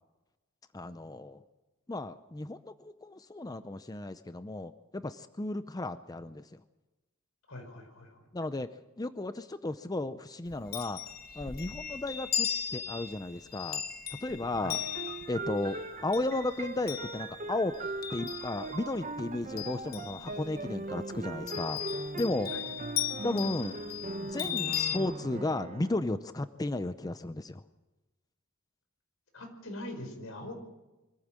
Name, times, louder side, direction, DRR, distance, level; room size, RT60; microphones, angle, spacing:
voice 1, 0.7-1.4 1.9-6.6 8.3-8.7 9.0-11.0 11.4-13.8 14.2-14.8 15.3-17.7 18.1-21.8 22.2-22.5 23.2-23.8 24.2-27.6, left 2 dB, 20° left, 11 dB, 0.6 m, -34 dB
voice 2, 7.5-8.3 14.6-14.7 22.5-22.6 29.3-30.5, left 1 dB, 85° left, 5 dB, 4.9 m, -42 dB
Chime, 10.5-19.0 19.3-20.7 21.5-25.0, left 10 dB, 50° left, 1.3 m, -37 dB
sound 1, 14.7-26.0, right 2 dB, 40° right, 1.0 m, -40 dB
24.5 x 15.0 x 7.5 m, 1.1 s
head